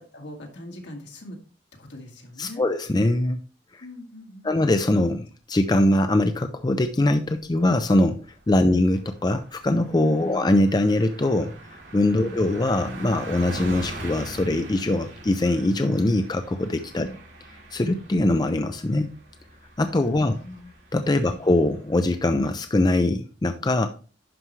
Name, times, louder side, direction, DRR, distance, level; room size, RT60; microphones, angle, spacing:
voice 1, 0.1-1.4 1.8-2.6 3.8-4.6 8.7-8.8 10.2-10.4 12.2-12.4 17.0-17.2 20.2-20.7 21.2-21.4, left 1 dB, 75° left, 1 dB, 2.1 m, -41 dB
voice 2, 2.4-3.4 3.7-3.8 4.4-11.5 11.9-17.1 17.7-19.1 19.8-20.3 20.9-23.9, left 1 dB, 25° left, 8 dB, 0.4 m, -22 dB
Car passing by, 7.3-7.5 7.8-8.0 8.3-22.5, right 1 dB, 85° right, 2.2 m, -42 dB
11.0 x 4.8 x 3.1 m, 0.37 s
head